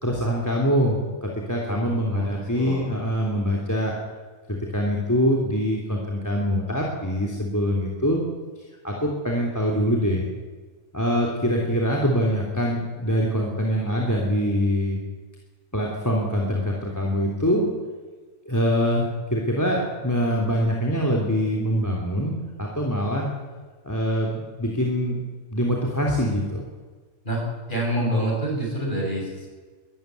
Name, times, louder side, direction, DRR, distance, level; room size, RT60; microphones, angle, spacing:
voice 1, 0.0-3.9 4.5-8.2 8.8-10.2 10.9-15.0 15.7-17.7 18.5-23.3 23.8-25.2 25.5-26.7, equal, 10° left, -1 dB, 3.1 m, -24 dB
voice 2, 1.7-2.8 27.2-29.5, right 1 dB, 35° left, -2 dB, 8.4 m, -27 dB
22.5 x 14.0 x 9.4 m, 1.4 s
omnidirectional pair, 1.5 m